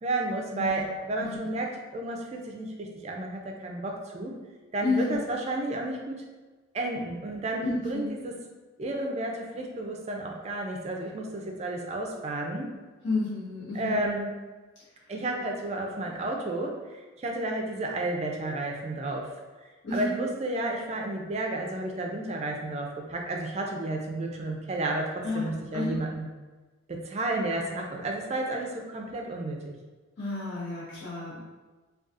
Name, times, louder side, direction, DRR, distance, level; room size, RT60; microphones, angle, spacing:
voice 1, 0.0-4.4 4.7-6.2 6.7-8.4 8.8-12.7 13.7-14.3 15.1-16.8 17.2-19.3 19.9-26.3 26.9-29.7, right 2 dB, 30° right, 1 dB, 0.3 m, -32 dB
voice 2, 0.5-0.8 1.2-1.4 4.8-5.2 7.6-8.1 13.0-14.1 19.8-20.2 25.2-26.0 30.2-31.4, left 3 dB, 55° left, -9 dB, 1.0 m, -31 dB
3.9 x 2.3 x 2.4 m, 1.3 s
head